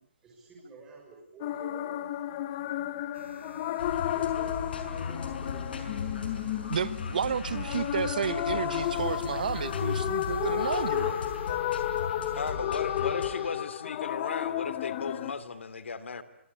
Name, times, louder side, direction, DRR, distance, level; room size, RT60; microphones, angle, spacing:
voice 1, 0.2-1.9 3.8-4.6 5.1-6.3 8.1-8.6 8.9-9.8 10.3-12.7 13.0-13.5, right 3 dB, 10° right, 6.8 m, -50 dB
sound 1, 1.4-15.3, left 12 dB, 20° left, 1.0 m, -32 dB
sound 2, 3.1-13.6, right 5 dB, 75° right, 5.3 m, -53 dB
sound 3, 3.8-13.3, left 5 dB, 55° left, 6.0 m, -37 dB
voice 2, 6.7-11.2, right 7 dB, 45° right, 1.2 m, -31 dB
voice 3, 12.3-16.2, left 5 dB, 80° left, 2.9 m, -35 dB
26.5 x 25.5 x 8.5 m
hypercardioid pair, 180°, 6 cm